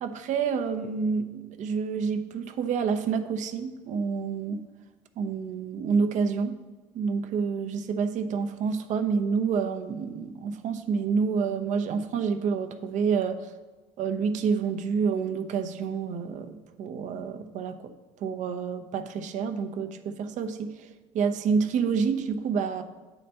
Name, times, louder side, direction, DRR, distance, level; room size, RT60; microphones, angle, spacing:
voice 1, 0.0-4.6 5.2-6.6 6.9-13.5 14.0-17.9 18.2-20.9 21.1-22.8, right 5 dB, 45° right, 8 dB, 0.7 m, -28 dB
10.0 x 4.2 x 5.6 m, 1.3 s
figure-of-eight pair, 55°, 17 cm